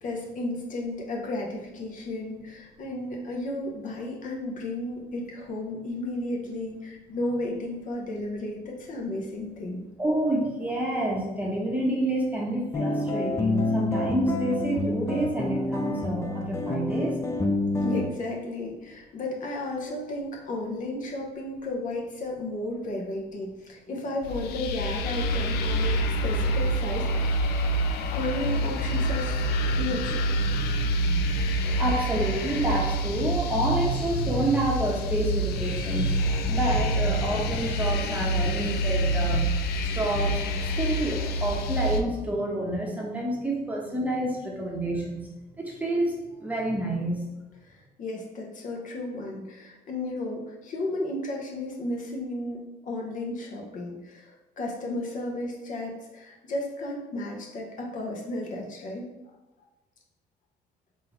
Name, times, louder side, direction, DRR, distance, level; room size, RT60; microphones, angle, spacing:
voice 1, 0.0-9.9 17.8-27.4 28.1-30.2 47.6-59.0, left 2 dB, 50° left, 0 dB, 0.9 m, -33 dB
voice 2, 10.0-17.1 29.6-30.0 30.4-39.5 39.8-45.3 45.6-46.2 46.4-47.2, right 1 dB, 10° right, -2 dB, 0.9 m, -29 dB
sound 1, 12.7-18.1, left 2 dB, 15° left, 0.5 m, -28 dB
sound 2, 24.2-42.0, right 1 dB, 70° left, 0.4 m, -27 dB
3.7 x 2.7 x 4.4 m, 1.1 s
cardioid pair, 110°, 17 cm